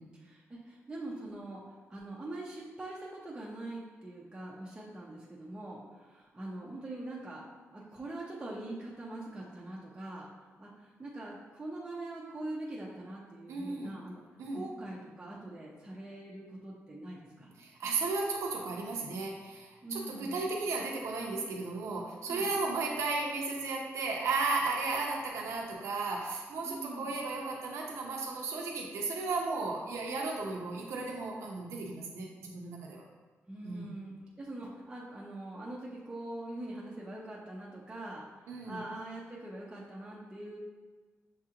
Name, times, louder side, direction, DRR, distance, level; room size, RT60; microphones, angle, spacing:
voice 1, 0.0-10.3 10.6-14.2 14.5-17.5 19.8-20.5 22.3-22.5 26.6-27.1 33.5-40.6, right 2 dB, 15° right, -5 dB, 0.5 m, -43 dB
voice 2, 13.5-13.9 14.4-14.6 17.6-33.0 33.6-33.9 38.5-38.8, right 3 dB, 90° right, -2 dB, 0.6 m, -34 dB
6.5 x 2.4 x 2.8 m, 1.4 s
wide cardioid pair, 155°, 5 cm